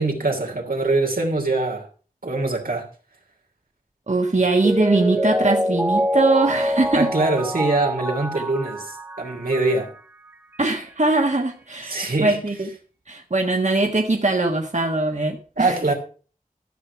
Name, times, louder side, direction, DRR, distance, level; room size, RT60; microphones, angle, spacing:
voice 1, 0.0-1.9 2.2-2.9 6.9-9.9 11.8-12.4 15.6-15.9, right 2 dB, 90° right, 3.0 m, -23 dB
voice 2, 4.1-7.1 10.6-12.7 13.1-15.8, right 2 dB, 55° right, 1.5 m, -21 dB
Mallet percussion, 4.5-10.0 10.3-10.4, equal, 15° right, 1.2 m, -25 dB
13.5 x 6.8 x 5.8 m
wide cardioid pair, 50°, 15 cm